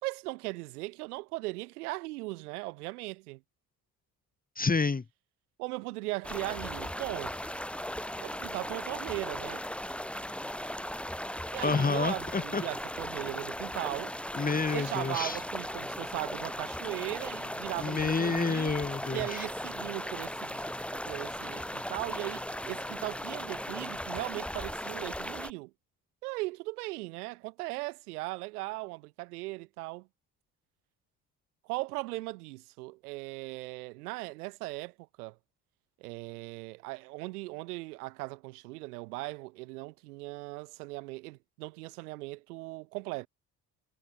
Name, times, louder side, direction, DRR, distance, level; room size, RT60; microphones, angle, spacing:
voice 1, 0.0-3.4 5.6-7.3 8.2-9.6 11.5-14.1 14.7-18.7 19.1-25.7 26.2-30.1 31.6-35.4 36.0-43.3, right 22 dB, 80° right, 5.8 m, -38 dB
voice 2, 4.6-5.0 11.6-12.6 14.3-15.4 17.8-19.5, left 4 dB, 20° left, 1.2 m, -29 dB
sound 1, 6.2-25.5, equal, ahead, 2.6 m, -37 dB
hypercardioid pair, 55°, 45 cm